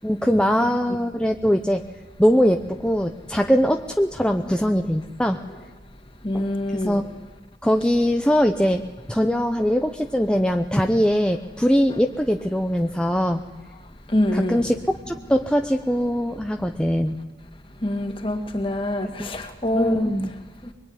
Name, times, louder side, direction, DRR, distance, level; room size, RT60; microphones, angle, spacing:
voice 1, 0.0-1.8 2.2-5.4 6.3-7.0 7.6-8.8 9.1-13.4 14.3-17.2 19.2-19.3 19.7-20.3, equal, 5° left, 5 dB, 0.8 m, -21 dB
voice 2, 6.2-7.0 14.1-14.7 17.8-20.1, left 1 dB, 30° left, 5 dB, 2.6 m, -25 dB
24.5 x 22.0 x 9.9 m, 1.1 s
head